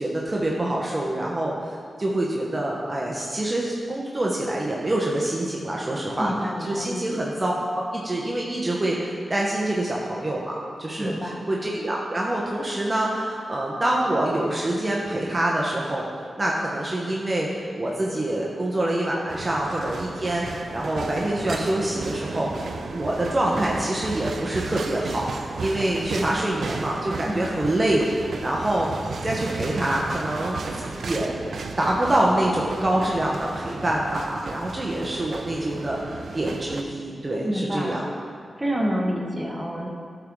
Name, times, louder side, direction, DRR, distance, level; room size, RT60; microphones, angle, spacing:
voice 1, 0.0-6.3 6.6-11.1 11.5-16.1 16.4-22.5 22.9-28.1 28.4-28.9 29.2-31.4 31.8-38.0, right 1 dB, 30° right, -3 dB, 1.0 m, -26 dB
voice 2, 6.2-7.3 11.0-11.5 27.3-27.7 37.4-38.1 38.6-39.9, equal, 15° right, -1 dB, 1.3 m, -28 dB
sound 1, 19.3-36.8, right 4 dB, 75° right, 0.5 m, -34 dB
11.0 x 4.7 x 3.7 m, 2.1 s
cardioid pair, 55°, 0 cm